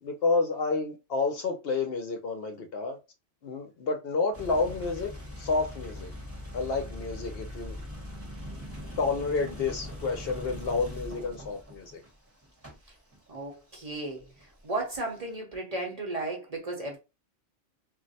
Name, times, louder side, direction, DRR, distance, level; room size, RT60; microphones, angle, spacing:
voice 1, 0.0-3.0 3.4-5.1 5.4-6.1 6.5-7.8 9.0-12.0, left 4 dB, 60° left, 0.8 m, -29 dB
sound 1, 4.3-14.8, left 1 dB, 15° right, 0.9 m, -41 dB
voice 2, 13.3-14.2 14.6-17.0, right 2 dB, 40° right, 0.8 m, -34 dB
2.5 x 2.1 x 3.9 m
omnidirectional pair, 1.2 m